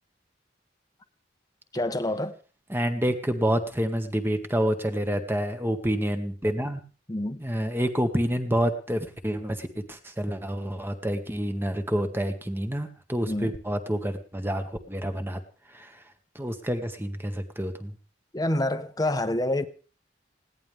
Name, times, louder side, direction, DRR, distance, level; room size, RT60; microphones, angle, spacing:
voice 1, 1.7-2.4 7.1-7.4 13.3-13.5 18.3-19.6, left 1 dB, 20° left, 1.2 m, -27 dB
voice 2, 2.7-6.8 7.4-15.4 15.7-16.0 16.4-17.9, equal, 15° right, 1.8 m, -28 dB
20.5 x 17.0 x 3.6 m
head